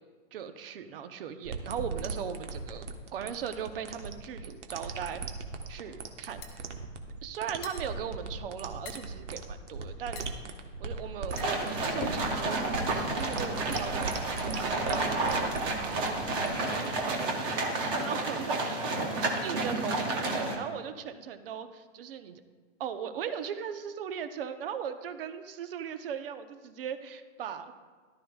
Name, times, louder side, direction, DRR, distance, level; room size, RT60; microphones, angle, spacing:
voice 1, 0.3-5.2 5.7-6.6 7.2-10.3 10.8-17.3 17.8-18.9 19.4-22.4 22.8-27.7, right 8 dB, 50° right, 9 dB, 0.9 m, -39 dB
sound 1, 1.4-17.6, right 4 dB, 65° right, 1.3 m, -39 dB
sound 2, 6.0-12.4, left 4 dB, 30° left, 1.1 m, -45 dB
sound 3, 11.3-20.6, right 2 dB, 15° right, 0.5 m, -31 dB
14.0 x 12.0 x 2.4 m, 1.5 s
hypercardioid pair, 155°, 38 cm